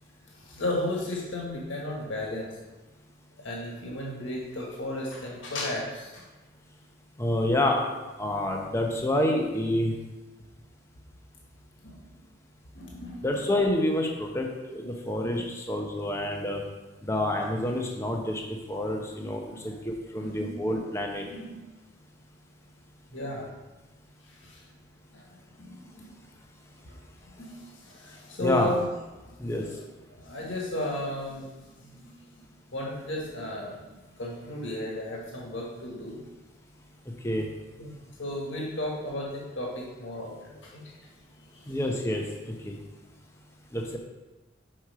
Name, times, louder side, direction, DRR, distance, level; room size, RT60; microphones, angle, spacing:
voice 1, 0.3-2.5 3.4-6.2 11.8-12.2 12.7-13.3 14.8-14.9 15.2-15.5 19.2-19.7 20.2-20.6 21.2-21.6 23.1-23.5 24.2-24.6 25.1-25.3 25.6-26.1 26.9-27.0 27.4-28.8 29.3-29.7 30.1-31.5 31.8-32.1 32.7-36.2 37.8-37.9 38.2-40.9 41.5-41.8, left 1 dB, 75° left, -3 dB, 1.5 m, -35 dB
voice 2, 7.2-7.8 8.2-9.9 13.2-16.6 17.0-18.4 18.7-21.3 28.4-28.7 29.4-29.6 37.2-37.5 41.7-42.8 43.7-44.0, left 1 dB, 15° left, 2 dB, 0.7 m, -28 dB
6.4 x 4.4 x 4.8 m, 1.1 s
head